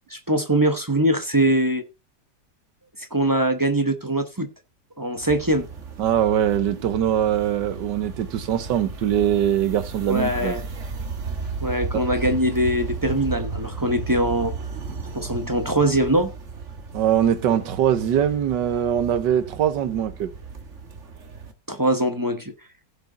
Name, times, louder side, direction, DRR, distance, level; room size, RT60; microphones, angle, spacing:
voice 1, 0.1-1.9 3.0-4.5 5.0-5.7 10.1-10.6 11.6-14.5 15.1-16.3 21.7-22.5, right 1 dB, 15° right, 0.8 m, -22 dB
sound 1, 5.2-21.5, right 4 dB, 45° right, 1.7 m, -34 dB
voice 2, 6.0-10.5 11.9-12.0 16.9-20.3, right 10 dB, 75° right, 1.7 m, -22 dB
16.0 x 6.0 x 3.9 m
omnidirectional pair, 1.9 m